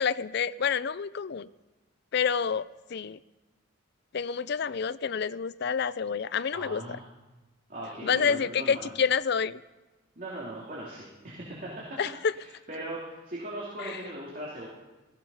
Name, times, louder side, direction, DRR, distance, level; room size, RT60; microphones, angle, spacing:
voice 1, 0.0-1.5 2.1-3.2 4.1-6.8 8.0-9.6 12.0-12.3 13.8-14.0, left 6 dB, 55° left, 18 dB, 0.4 m, -28 dB
voice 2, 6.5-7.0 7.7-8.9 10.2-12.0 12.3-14.7, right 1 dB, 40° right, -5 dB, 2.9 m, -39 dB
16.0 x 15.0 x 5.6 m, 1.1 s
head